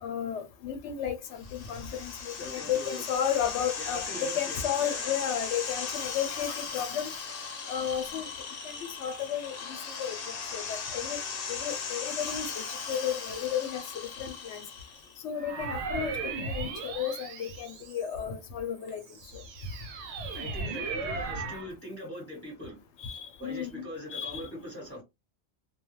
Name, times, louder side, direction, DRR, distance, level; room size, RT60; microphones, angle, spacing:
voice 1, 0.0-7.1 7.7-8.3 8.6-10.2 10.5-11.2 11.5-13.8 14.2-14.6 15.2-19.0 23.0-24.4, left 8 dB, 85° left, 0.9 m, -33 dB
sound 1, 1.4-15.2, left 5 dB, 60° left, 0.8 m, -38 dB
voice 2, 2.3-3.0 3.8-5.1 20.3-22.9 23.4-25.0, left 1 dB, 15° left, 1.1 m, -41 dB
sound 2, 15.4-18.3 18.9-21.7, right 4 dB, 80° right, 0.9 m, -36 dB
2.3 x 2.2 x 3.0 m
omnidirectional pair, 1.2 m